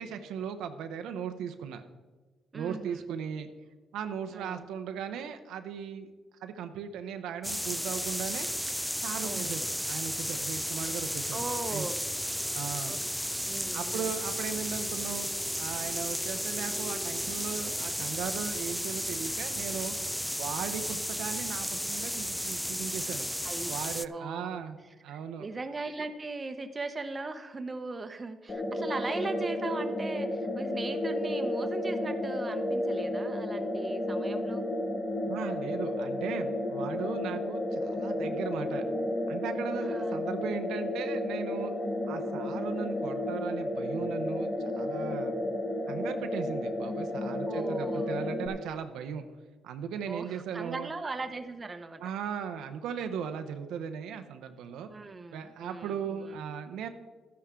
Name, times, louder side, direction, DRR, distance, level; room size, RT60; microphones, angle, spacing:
voice 1, 0.0-1.8 2.5-3.5 3.9-6.1 6.4-8.5 9.0-11.4 11.7-11.9 12.5-13.0 13.7-20.0 20.3-23.3 23.7-24.8 25.0-25.5 35.3-38.9 39.3-41.7 42.0-44.5 44.8-45.3 45.9-49.2 49.6-50.9 52.0-54.9 55.3-56.9, right 7 dB, 85° right, 8 dB, 0.7 m, -37 dB
voice 2, 2.5-3.0 4.3-4.7 9.2-9.5 11.3-12.0 12.9-13.0 13.4-14.1 23.4-23.7 24.1-24.6 25.1-34.6 39.8-40.2 47.5-48.1 50.1-52.0 54.9-56.5, right 3 dB, 30° right, 8 dB, 0.9 m, -39 dB
sound 1, 7.4-24.1, equal, ahead, 0.3 m, -33 dB
sound 2, 28.5-48.5, left 1 dB, 25° left, 1.8 m, -32 dB
12.5 x 10.5 x 3.7 m, 1.3 s
cardioid pair, 90°, 0 cm